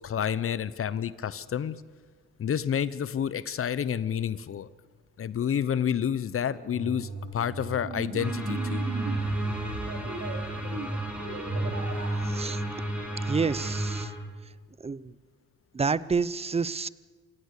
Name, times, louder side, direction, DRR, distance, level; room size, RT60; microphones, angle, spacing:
voice 1, 0.0-1.8 2.4-4.7 5.2-8.8, left 8 dB, 45° left, 17 dB, 0.8 m, -29 dB
sound 1, 6.7-12.3, right 3 dB, 55° right, 4.1 m, -37 dB
sound 2, 8.2-14.1, right 1 dB, 5° right, 6.3 m, -31 dB
voice 2, 12.3-12.6 13.3-14.1 14.8-15.1 15.7-16.9, right 5 dB, 20° right, 19 dB, 0.7 m, -28 dB
27.5 x 16.5 x 6.8 m, 1.4 s
cardioid pair, 90°, 30 cm